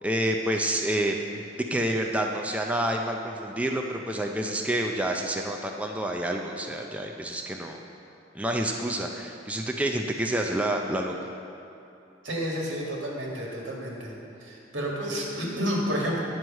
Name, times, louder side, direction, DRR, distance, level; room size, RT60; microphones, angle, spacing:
voice 1, 0.0-1.2 1.7-7.8 8.3-11.2, right 1 dB, 5° right, 2 dB, 0.4 m, -28 dB
voice 2, 12.2-14.1 14.4-16.2, equal, 80° right, -3 dB, 1.7 m, -30 dB
9.3 x 4.6 x 6.3 m, 2.8 s
head